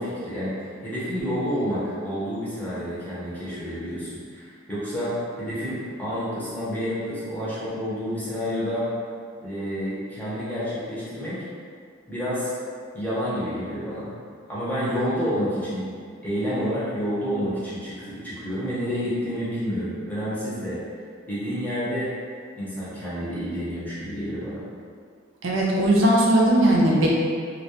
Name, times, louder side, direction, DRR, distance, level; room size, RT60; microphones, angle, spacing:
voice 1, 0.0-8.9 9.4-11.4 12.1-12.5 12.9-14.1 14.5-15.9 16.2-20.8 21.3-22.1 22.6-24.6, equal, 10° left, -10 dB, 0.6 m, -29 dB
voice 2, 25.4-27.1, right 1 dB, 75° right, -4 dB, 0.5 m, -18 dB
2.2 x 2.1 x 2.8 m, 2.1 s
head